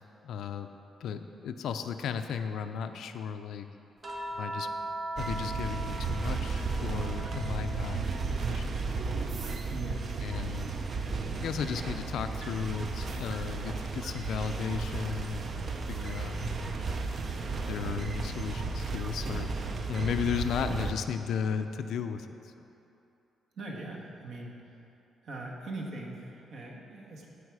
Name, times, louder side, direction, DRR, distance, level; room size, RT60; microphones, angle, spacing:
voice 1, 0.2-0.7 1.0-3.7 4.3-4.7 5.2-8.0 8.3-9.0 10.2-10.7 11.4-15.6 15.9-16.8 17.7-19.5 19.9-22.3 22.6-22.7, left 7 dB, 75° left, 8 dB, 0.5 m, -35 dB
sound 1, 4.0-8.5 8.9-10.5 12.0-12.2, right 1 dB, 25° right, 1.2 m, -41 dB
sound 2, 5.2-20.9, right 4 dB, 40° right, 0.6 m, -34 dB
voice 2, 9.7-10.1 23.6-24.6 25.2-27.3, right 2 dB, 60° right, -1 dB, 1.4 m, -40 dB
14.5 x 5.0 x 4.8 m, 2.8 s
cardioid pair, 150°, 0 cm